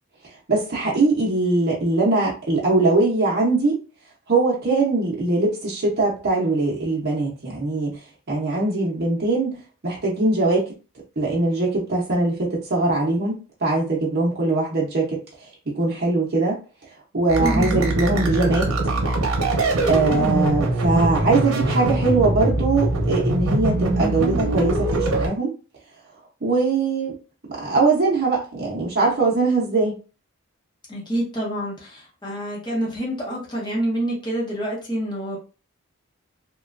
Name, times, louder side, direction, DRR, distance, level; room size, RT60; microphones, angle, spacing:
voice 1, 0.5-3.8 4.3-8.0 8.3-9.6 9.8-10.6 11.2-15.2 15.7-16.6 17.1-18.7 18.9-19.1 19.9-25.5 26.4-27.2 27.5-29.9, right 3 dB, 50° right, 0.7 m, -21 dB
sound 1, 17.3-25.3, right 2 dB, 90° right, 0.7 m, -22 dB
voice 2, 17.4-17.8 30.9-35.4, right 1 dB, 20° left, 0.9 m, -27 dB
2.9 x 2.2 x 2.4 m
head